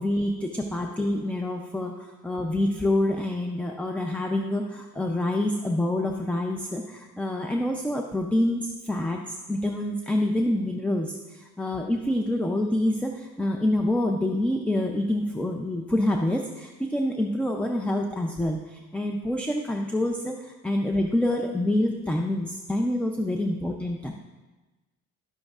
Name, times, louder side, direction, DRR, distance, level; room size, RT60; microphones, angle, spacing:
voice 1, 0.0-24.2, left 1 dB, 5° left, 3 dB, 0.4 m, -27 dB
11.5 x 7.6 x 2.4 m, 1.2 s
cardioid pair, 110°, 35 cm